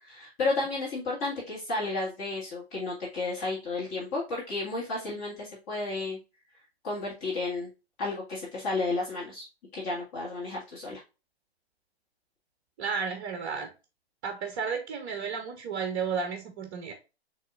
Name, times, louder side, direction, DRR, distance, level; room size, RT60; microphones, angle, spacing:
voice 1, 0.0-6.2 6.8-7.7 8.0-9.5 9.7-11.0, left 3 dB, 30° left, 1.8 m, -32 dB
voice 2, 12.8-13.7 14.2-16.9, right 6 dB, 25° right, 0.8 m, -32 dB
7.3 x 3.0 x 2.4 m
hypercardioid pair, 135°, 32 cm